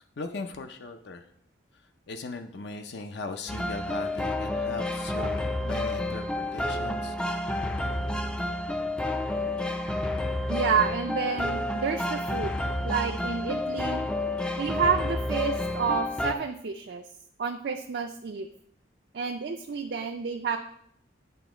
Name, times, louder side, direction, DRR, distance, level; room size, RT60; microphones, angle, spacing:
voice 1, 0.2-1.3 1.7-7.2, left 3 dB, 60° left, 7 dB, 0.5 m, -39 dB
sound 1, 3.5-16.3, left 1 dB, 5° left, 0.3 m, -30 dB
voice 2, 10.5-12.6 12.8-14.0 14.6-17.0 17.4-18.5 19.1-20.6, right 6 dB, 55° right, 4 dB, 0.4 m, -29 dB
9.1 x 3.1 x 4.9 m, 0.69 s
head